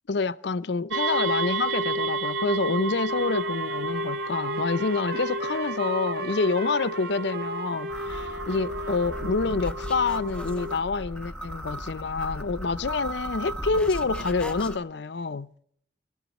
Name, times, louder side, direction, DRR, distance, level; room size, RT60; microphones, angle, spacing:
voice 1, 0.1-15.5, left 4 dB, 70° left, 0.6 m, -27 dB
sound 1, 0.9-10.8, right 2 dB, 75° right, 0.7 m, -31 dB
Trumpet, 3.0-9.7, right 4 dB, 50° right, 0.9 m, -39 dB
sound 2, 7.9-14.8, equal, 5° left, 0.6 m, -36 dB
26.0 x 12.0 x 4.2 m
head